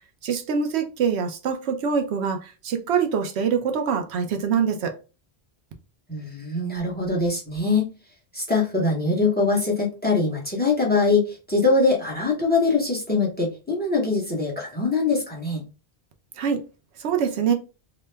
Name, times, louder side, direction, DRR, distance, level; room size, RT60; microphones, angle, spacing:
voice 1, 0.2-4.9 16.4-16.6 17.0-17.5, right 6 dB, 85° right, 0.9 m, -24 dB
voice 2, 6.1-7.9 8.3-15.6, left 3 dB, 10° left, 1.0 m, -23 dB
2.9 x 2.2 x 3.2 m
omnidirectional pair, 1.1 m